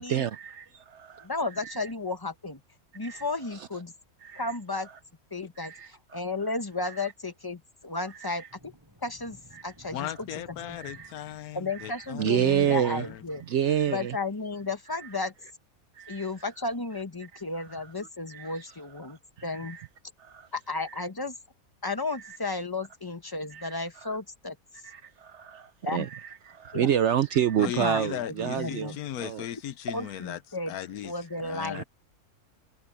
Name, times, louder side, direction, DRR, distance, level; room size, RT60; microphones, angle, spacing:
voice 1, 0.0-1.3 1.6-1.7 3.0-3.2 4.2-4.4 5.6-6.2 8.2-8.3 9.6-9.7 10.7-11.1 11.8-11.9 12.2-13.1 13.5-14.1 15.0-15.1 16.0-16.3 18.3-18.6 19.6-19.9 20.2-20.5 20.9-21.1 23.5-23.7 24.0-24.2 24.8-26.2 26.5-28.9 29.2-29.5 31.7-31.8, right 9 dB, 65° right, 0.8 m, -28 dB
voice 2, 1.2-2.6 2.9-3.9 4.3-4.9 5.3-8.7 9.0-9.4 9.6-10.8 11.5-13.4 13.9-15.3 16.1-19.8 20.5-21.3 21.8-24.8 25.8-26.1 26.7-26.9 27.6-29.0 29.9-30.8 31.0-31.8, left 3 dB, 15° left, 1.1 m, -34 dB
sound 1, 8.5-13.5, equal, 15° right, 7.3 m, -55 dB
voice 3, 9.9-13.2 27.6-30.4 30.7-31.1 31.4-31.8, left 11 dB, 80° left, 1.2 m, -37 dB
omnidirectional pair, 1.5 m